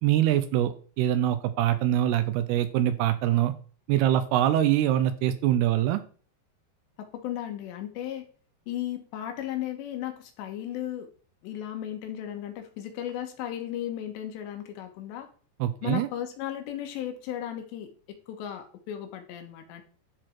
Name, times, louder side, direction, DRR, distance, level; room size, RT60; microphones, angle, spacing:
voice 1, 0.0-3.5 3.9-6.0 15.6-16.1, right 12 dB, 80° right, 11 dB, 2.5 m, -24 dB
voice 2, 7.0-8.3 8.7-11.1 11.4-15.3 15.8-19.8, left 11 dB, 80° left, 5 dB, 3.4 m, -35 dB
12.5 x 4.2 x 4.4 m, 0.41 s
omnidirectional pair, 5.0 m